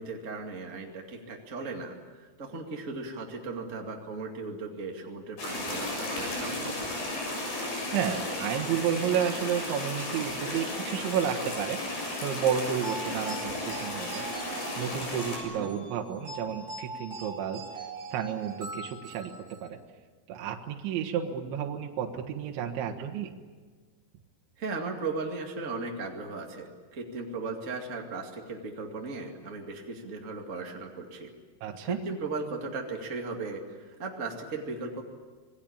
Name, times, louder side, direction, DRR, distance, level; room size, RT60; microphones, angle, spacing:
voice 1, 0.0-6.8 15.4-15.7 24.6-31.3 31.8-35.0, right 3 dB, 45° right, 1 dB, 1.0 m, -37 dB
sound 1, 5.4-15.4, left 2 dB, 55° left, 9.0 m, -34 dB
voice 2, 7.9-11.8 12.2-14.3 14.8-19.3 19.6-19.8 20.3-23.3 31.6-32.0, right 8 dB, 75° right, 3 dB, 3.7 m, -31 dB
sound 2, 12.8-19.7, right 3 dB, 20° right, 4.1 m, -42 dB
26.5 x 21.0 x 8.7 m, 1.4 s
omnidirectional pair, 5.5 m